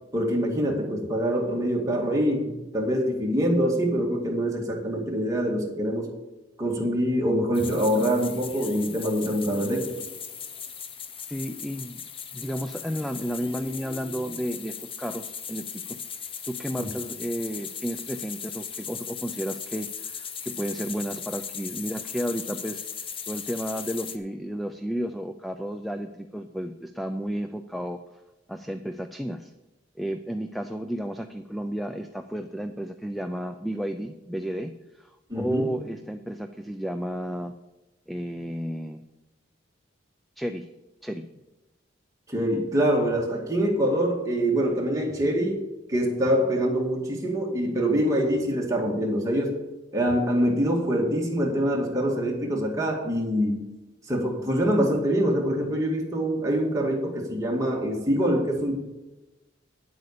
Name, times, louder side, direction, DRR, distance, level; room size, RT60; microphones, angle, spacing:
voice 1, 0.1-6.1 6.6-10.0 16.8-16.9 35.3-35.7 42.3-49.6 49.9-53.7 54.1-58.8, equal, 15° right, -1 dB, 2.1 m, -25 dB
sound 1, 7.5-24.2, left 7 dB, 30° left, 0.7 m, -38 dB
voice 2, 11.3-12.0 12.3-16.0 16.5-22.8 23.3-28.0 28.5-29.5 30.0-37.5 38.1-39.0 40.4-40.7 41.0-41.3, equal, ahead, 7 dB, 0.4 m, -32 dB
9.9 x 8.1 x 6.7 m, 1.1 s
head